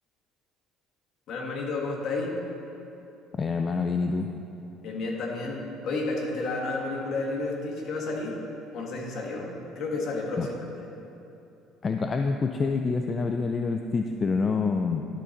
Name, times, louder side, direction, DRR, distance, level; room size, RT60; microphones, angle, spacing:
voice 1, 1.3-2.4 4.8-8.4 8.7-10.9, left 3 dB, 55° left, -1 dB, 1.6 m, -31 dB
voice 2, 3.4-4.3 10.4-10.5 11.8-15.0, left 4 dB, 35° left, 5 dB, 0.4 m, -27 dB
12.0 x 4.2 x 5.1 m, 2.8 s
supercardioid pair, 95°, 0 cm